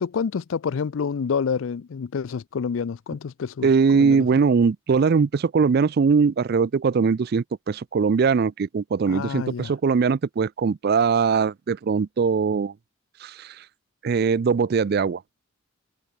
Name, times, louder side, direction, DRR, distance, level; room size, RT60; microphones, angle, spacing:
voice 1, 0.0-4.3 9.1-9.7, left 6 dB, 70° left, 0.4 m, -28 dB
voice 2, 3.6-12.7 13.2-13.5 14.0-15.2, right 5 dB, 50° right, 0.4 m, -21 dB
head